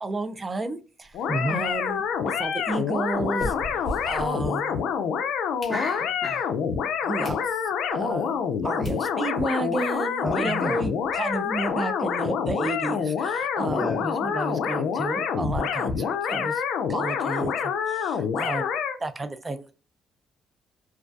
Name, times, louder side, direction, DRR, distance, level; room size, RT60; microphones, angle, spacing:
voice 1, 0.0-1.2 1.5-4.8 7.0-7.4 7.9-16.6 16.9-18.7 19.0-19.7, right 2 dB, 25° right, 11 dB, 0.3 m, -32 dB
sound 1, 1.0-5.0 5.3-6.3 6.8-6.9 7.2-7.5 7.9-8.0 8.5-8.6 8.8-9.0 9.5-9.6 9.7-9.9 10.2-10.3 10.6-11.7, left 1 dB, 40° left, 0.8 m, -40 dB
sound 2, 1.1-19.0, left 7 dB, 85° left, 0.3 m, -27 dB
voice 2, 1.3-1.6 5.7-6.5 10.2-10.7 13.7-14.0, equal, 10° left, -6 dB, 0.8 m, -29 dB
2.3 x 2.2 x 2.5 m, 0.34 s
cardioid pair, 90°, 0 cm